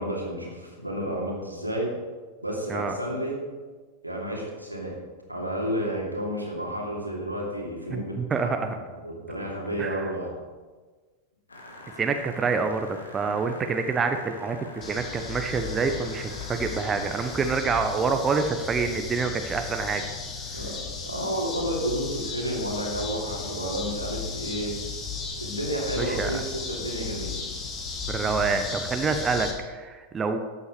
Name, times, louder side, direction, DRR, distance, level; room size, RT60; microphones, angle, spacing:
voice 1, 0.0-1.9 2.4-3.4 4.0-4.9 5.3-10.3 20.5-24.7 25.4-27.3, equal, 90° right, -2 dB, 2.6 m, -31 dB
voice 2, 7.9-8.8 9.4-10.1 12.0-20.0 26.0-26.4 28.1-30.4, right 4 dB, 20° right, 6 dB, 0.9 m, -27 dB
sound 1, 11.5-17.5, left 2 dB, 75° left, 1.8 m, -45 dB
sound 2, 14.8-29.5, left 5 dB, 25° left, 1.9 m, -35 dB
13.0 x 8.4 x 4.9 m, 1.4 s
figure-of-eight pair, 90°, 0 cm